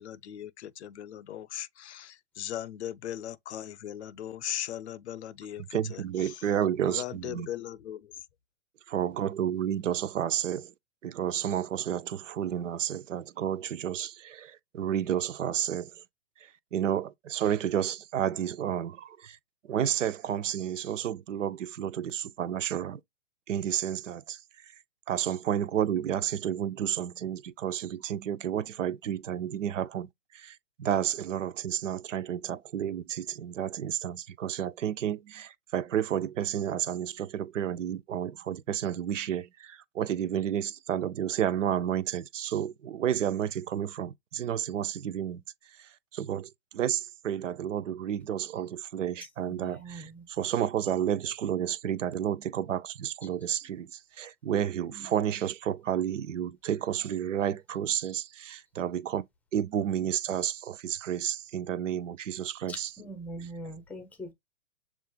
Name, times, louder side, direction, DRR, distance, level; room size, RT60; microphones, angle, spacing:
voice 1, 0.0-6.4 6.8-8.1, left 11 dB, 65° left, 0.6 m, -39 dB
voice 2, 5.7-7.5 8.9-10.7 11.0-15.9 16.7-19.4 19.7-23.0 23.5-24.4 25.1-30.1 30.3-45.4 46.1-59.2 59.5-62.9, right 10 dB, 80° right, 0.6 m, -31 dB
voice 3, 49.4-50.3 53.2-53.3 54.9-55.1 62.7-64.3, right 1 dB, 5° left, 0.6 m, -42 dB
7.1 x 2.5 x 2.3 m
hypercardioid pair, 135°, 37 cm